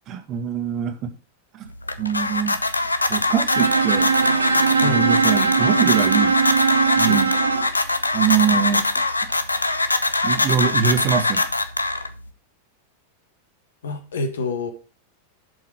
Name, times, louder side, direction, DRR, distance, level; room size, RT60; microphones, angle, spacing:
voice 1, 0.1-1.1 1.5-1.7 2.0-2.6 3.1-4.1 4.8-6.4 7.0-7.3 8.1-8.9 9.2-9.3 10.2-11.4, right 8 dB, 35° right, 1.6 m, -23 dB
sound 1, 1.7-12.3, left 2 dB, 80° left, 0.7 m, -23 dB
Bowed string instrument, 3.5-7.7, right 5 dB, 75° right, 1.3 m, -20 dB
voice 2, 13.8-14.7, left 3 dB, 65° left, 1.6 m, -27 dB
11.5 x 5.6 x 4.6 m
figure-of-eight pair, 90°, 0 cm